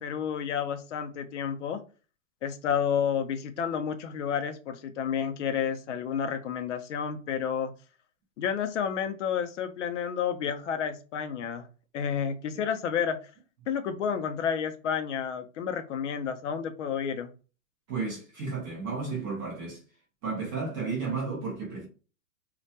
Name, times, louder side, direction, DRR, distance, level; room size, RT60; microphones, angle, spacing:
voice 1, 0.0-1.8 2.4-7.7 8.4-11.7 11.9-13.2 13.7-17.3, left 7 dB, 65° left, 0.5 m, -30 dB
voice 2, 17.9-19.8 20.2-21.9, right 4 dB, 15° right, 0.4 m, -33 dB
2.2 x 2.1 x 2.7 m
hypercardioid pair, 150°, 40 cm